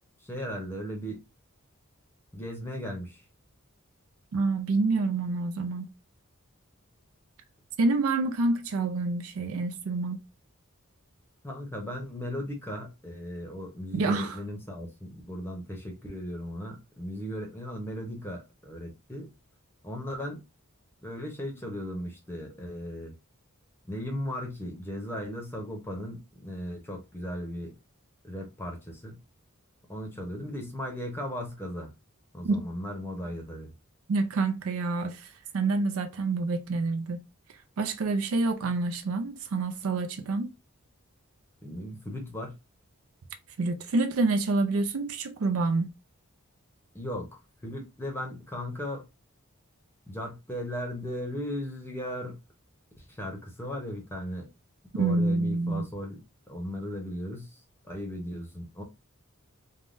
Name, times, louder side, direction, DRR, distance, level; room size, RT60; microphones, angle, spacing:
voice 1, 0.3-1.2 2.3-3.2 11.4-19.3 19.8-20.4 21.0-23.1 23.8-27.7 28.2-29.2 29.9-31.9 32.3-33.7 41.6-42.6 46.9-49.0 50.1-52.4 53.0-54.5 54.9-56.2 56.5-57.6 57.9-58.8, equal, 10° left, 0.7 m, -37 dB
voice 2, 4.3-5.9 7.8-10.2 13.9-14.4 32.4-32.6 34.1-37.2 37.8-40.5 43.6-45.9 54.9-55.9, right 3 dB, 75° right, 0.4 m, -27 dB
3.5 x 2.1 x 2.5 m
head